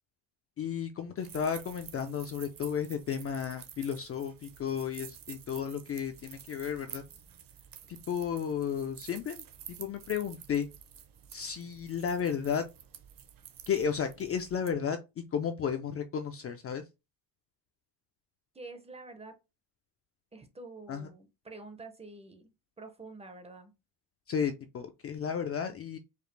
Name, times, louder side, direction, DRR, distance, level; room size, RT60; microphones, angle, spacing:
voice 1, 0.6-7.0 7.9-10.7 11.3-12.6 13.7-15.0 15.3-16.8 20.9-21.1 24.3-26.0, left 7 dB, 35° left, 0.4 m, -33 dB
sound 1, 1.2-14.7, right 9 dB, 50° right, 0.8 m, -50 dB
voice 2, 18.5-19.4 20.3-23.7, right 3 dB, 15° right, 0.5 m, -48 dB
5.0 x 2.4 x 3.2 m
cardioid pair, 150°, 43 cm